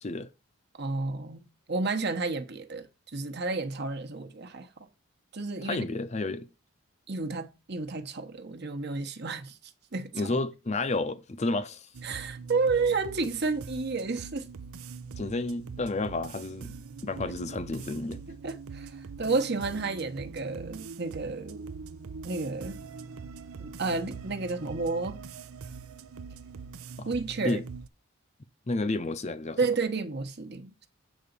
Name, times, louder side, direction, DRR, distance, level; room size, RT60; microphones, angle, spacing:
voice 1, 0.8-4.9 5.3-5.9 7.1-10.3 12.0-14.5 18.4-21.6 22.2-22.8 23.6-25.2 27.1-27.6 29.6-30.7, right 3 dB, 50° right, 1.1 m, -31 dB
voice 2, 5.6-6.5 10.1-11.9 15.2-16.7 17.0-18.2 27.0-27.1 27.4-27.6 28.7-29.6, left 2 dB, 30° left, 0.6 m, -31 dB
Ambient beat, 11.9-27.9, right 5 dB, 85° right, 0.6 m, -43 dB
8.4 x 3.9 x 6.8 m
head